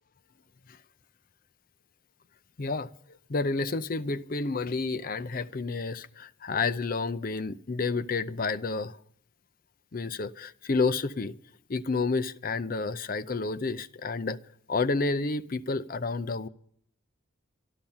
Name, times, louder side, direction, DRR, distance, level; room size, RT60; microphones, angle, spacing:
voice 1, 2.6-2.9 3.3-9.0 9.9-11.3 11.7-14.4 14.7-16.5, left 3 dB, 45° left, 0.5 m, -30 dB
12.0 x 12.0 x 7.2 m
head